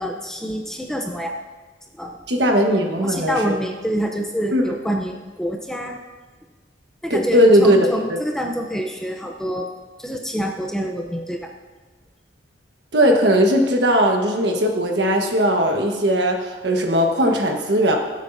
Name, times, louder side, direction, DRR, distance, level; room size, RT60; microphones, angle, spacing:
voice 1, 0.0-1.4 1.9-2.2 3.0-6.0 7.0-9.7 10.0-11.5, equal, 5° left, 2 dB, 0.6 m, -26 dB
voice 2, 2.3-3.5 4.5-4.6 7.1-8.2 12.9-18.0, equal, 65° right, 2 dB, 1.4 m, -18 dB
20.5 x 8.2 x 2.7 m, 1.3 s
head